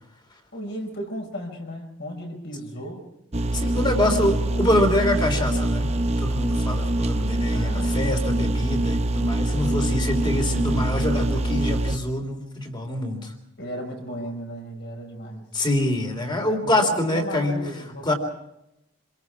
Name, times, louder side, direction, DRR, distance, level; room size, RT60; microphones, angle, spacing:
voice 1, 0.5-3.0 3.6-4.7 7.5-8.0 10.3-11.1 13.6-15.5 16.6-18.2, equal, 55° left, 3 dB, 5.8 m, -35 dB
sound 1, 3.3-12.0, right 1 dB, 30° right, 0.8 m, -24 dB
voice 2, 3.5-13.3 15.5-17.6 18.0-18.1, left 1 dB, 20° left, 4 dB, 3.3 m, -25 dB
26.5 x 22.0 x 4.8 m, 0.86 s
head